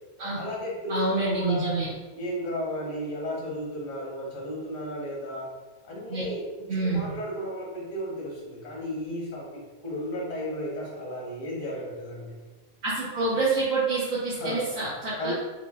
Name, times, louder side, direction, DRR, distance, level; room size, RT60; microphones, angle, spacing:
voice 1, 0.4-1.8 2.1-5.5 5.8-12.4 14.3-14.6 15.2-15.3, equal, 85° left, -4 dB, 1.4 m, -34 dB
voice 2, 0.9-1.9 6.1-6.2 6.7-7.0 12.8-15.3, right 3 dB, 85° right, -12 dB, 1.5 m, -27 dB
5.8 x 2.0 x 2.4 m, 1.2 s
omnidirectional pair, 1.4 m